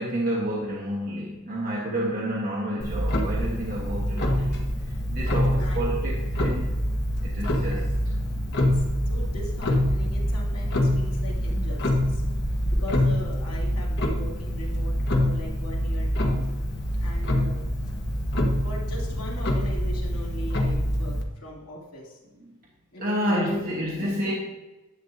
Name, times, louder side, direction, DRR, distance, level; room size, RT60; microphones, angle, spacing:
voice 1, 0.0-4.6 5.1-6.7 7.2-7.9 22.4-22.5 23.0-24.3, equal, 40° right, -4 dB, 1.2 m, -29 dB
Clock, 2.8-21.2, equal, 55° left, 1.1 m, -25 dB
voice 2, 4.3-4.8 5.3-6.1 7.6-7.8 8.2-12.2 12.7-16.5 17.0-17.6 18.6-22.2 22.9-23.6 23.9-24.3, equal, 85° left, -4 dB, 2.4 m, -40 dB
11.0 x 7.3 x 2.6 m, 1.1 s
head